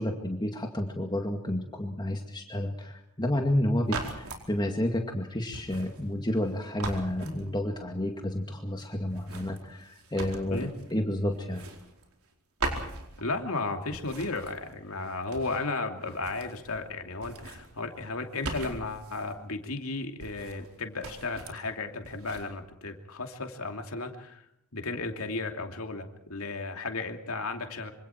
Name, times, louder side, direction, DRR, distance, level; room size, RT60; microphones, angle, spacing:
voice 1, 0.0-11.7, left 1 dB, 20° left, 3 dB, 2.1 m, -30 dB
sound 1, 3.8-4.5 5.5-6.5 6.8-7.8 9.1-11.0 11.3-12.3 12.6-13.6 13.9-15.7 16.0-16.9 17.1-19.3 20.2-20.7 21.0-21.6 22.0-22.5, right 2 dB, 80° right, 4.6 m, -40 dB
voice 2, 13.2-24.4 24.7-27.9, left 3 dB, 75° left, 5 dB, 2.8 m, -34 dB
26.0 x 26.0 x 4.5 m, 0.73 s
head